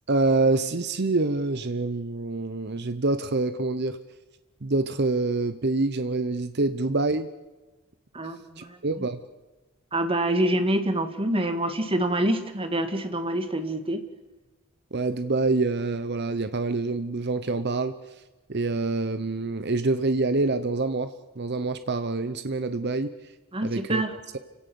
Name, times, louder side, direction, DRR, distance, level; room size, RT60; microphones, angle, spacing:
voice 1, 0.1-4.0 4.6-7.3 8.6-9.2 14.9-17.9 18.5-23.1 23.6-24.0, right 3 dB, 55° right, 10 dB, 0.9 m, -26 dB
voice 2, 8.1-8.8 9.9-14.0 23.5-24.1, right 1 dB, 25° right, 8 dB, 1.9 m, -26 dB
29.5 x 17.0 x 7.1 m, 1.1 s
head